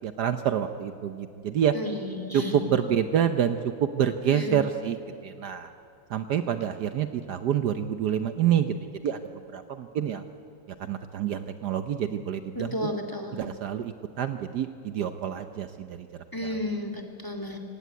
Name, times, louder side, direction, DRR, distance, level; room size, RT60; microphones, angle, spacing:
voice 1, 0.0-1.7 2.3-5.0 5.2-5.7 6.1-8.7 9.0-9.2 9.5-10.2 10.8-12.9 13.3-16.1 16.4-16.6, right 9 dB, 65° right, 9 dB, 1.3 m, -27 dB
voice 2, 1.7-2.6 4.3-4.6 12.6-13.4 16.3-17.6, left 1 dB, 10° left, 4 dB, 2.1 m, -33 dB
25.5 x 17.0 x 9.4 m, 2.5 s
omnidirectional pair, 2.1 m